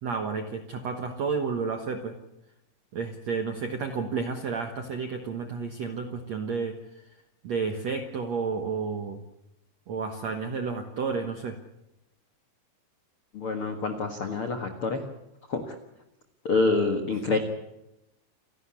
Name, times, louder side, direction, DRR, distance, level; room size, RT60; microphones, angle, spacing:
voice 1, 0.0-2.2 2.9-7.0 7.4-9.2 9.9-11.6 17.3-17.4, right 5 dB, 75° right, 7 dB, 1.5 m, -31 dB
voice 2, 13.3-15.0 15.5-15.8 16.4-17.4, left 3 dB, 65° left, 6 dB, 1.3 m, -27 dB
28.5 x 12.0 x 9.8 m, 0.90 s
omnidirectional pair, 5.2 m